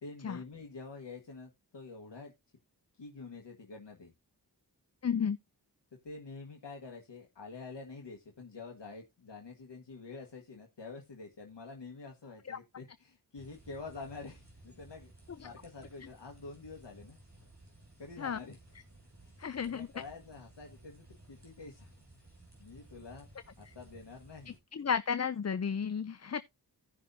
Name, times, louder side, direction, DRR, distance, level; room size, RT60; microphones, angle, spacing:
voice 1, 0.0-2.3 2.9-4.1 6.0-17.2 18.0-18.6 19.2-21.9 22.6-23.3 23.6-24.6, left 4 dB, 80° left, 1.6 m, -47 dB
voice 2, 5.0-5.4 12.5-12.6 18.2-18.4 19.4-19.9 24.7-26.4, left 7 dB, 40° left, 0.5 m, -32 dB
sound 1, 13.4-24.6, right 1 dB, 40° right, 7.5 m, -57 dB
16.5 x 6.1 x 2.7 m
wide cardioid pair, 55°, 42 cm